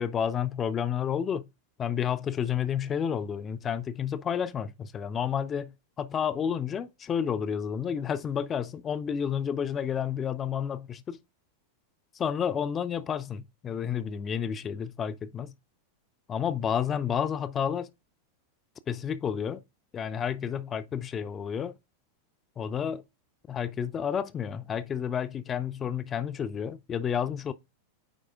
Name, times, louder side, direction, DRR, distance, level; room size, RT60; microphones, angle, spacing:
voice 1, 0.0-1.4 1.8-5.7 6.0-11.2 12.1-15.5 16.3-17.9 18.9-19.6 19.9-21.8 22.6-23.0 23.5-27.5, left 8 dB, 25° left, 0.3 m, -30 dB
8.7 x 4.7 x 2.4 m
figure-of-eight pair, 90°, 0 cm